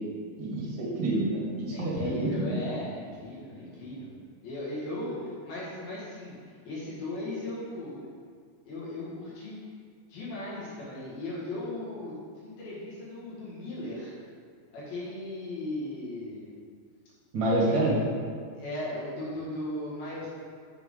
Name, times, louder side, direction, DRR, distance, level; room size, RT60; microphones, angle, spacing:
voice 1, 0.4-2.6 17.3-18.0, right 1 dB, 45° right, -6 dB, 1.7 m, -27 dB
voice 2, 1.7-4.1 4.4-8.0 8.6-9.6 10.1-12.1 12.4-14.1 14.7-16.5 17.6-17.8 18.5-20.3, left 1 dB, 60° left, -8 dB, 3.5 m, -37 dB
7.8 x 7.3 x 3.8 m, 2.1 s
omnidirectional pair, 5.1 m